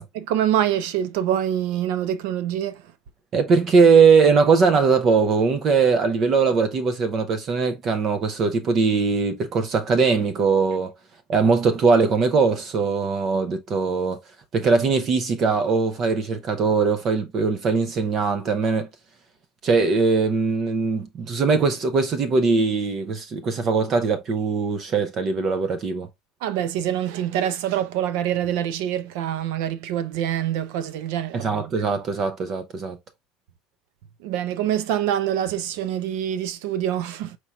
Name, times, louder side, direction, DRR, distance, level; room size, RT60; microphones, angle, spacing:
voice 1, 0.1-2.8 26.4-31.7 34.2-37.4, right 10 dB, 75° right, 0.7 m, -25 dB
voice 2, 3.3-10.9 11.3-14.2 14.5-18.9 19.6-26.1 31.3-33.0, right 4 dB, 35° right, 0.6 m, -20 dB
4.5 x 4.4 x 2.3 m
cardioid pair, 155°, 0 cm